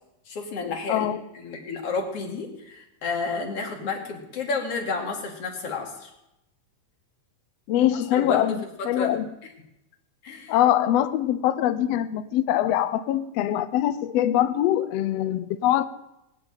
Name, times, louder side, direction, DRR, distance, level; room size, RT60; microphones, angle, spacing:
voice 1, 0.3-1.1 1.3-6.1 7.9-8.4 9.0-9.2 10.2-10.6, left 4 dB, 50° left, 1 dB, 3.2 m, -31 dB
voice 2, 0.9-1.2 7.7-9.3 10.5-15.9, left 12 dB, 85° left, 12 dB, 1.4 m, -23 dB
20.0 x 7.6 x 8.9 m, 0.87 s
omnidirectional pair, 3.7 m